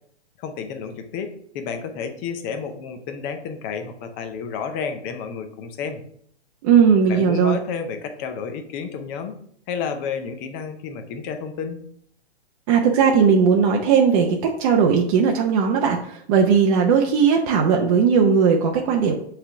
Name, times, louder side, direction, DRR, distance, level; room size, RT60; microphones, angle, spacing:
voice 1, 0.4-6.0 7.1-9.4 9.7-11.8, left 6 dB, 20° left, 7 dB, 0.5 m, -31 dB
voice 2, 6.6-7.6 12.7-19.2, right 6 dB, 35° right, 1 dB, 0.6 m, -18 dB
5.7 x 3.4 x 5.5 m, 0.66 s
hypercardioid pair, 145°, 33 cm